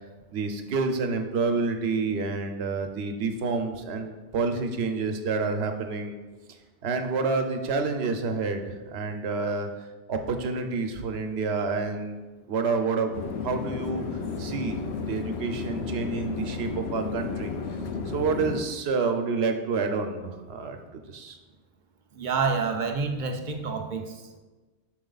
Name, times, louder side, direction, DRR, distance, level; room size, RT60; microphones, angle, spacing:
voice 1, 0.3-6.1 6.8-9.7 10.1-12.1 12.5-14.0 14.4-17.5 18.1-21.4, right 4 dB, 70° right, 6 dB, 1.0 m, -28 dB
sound 1, 13.1-18.6, left 4 dB, 75° left, 0.9 m, -33 dB
voice 2, 22.2-24.1, right 4 dB, 55° right, 5 dB, 0.7 m, -28 dB
6.4 x 4.5 x 3.9 m, 1.2 s
omnidirectional pair, 1.1 m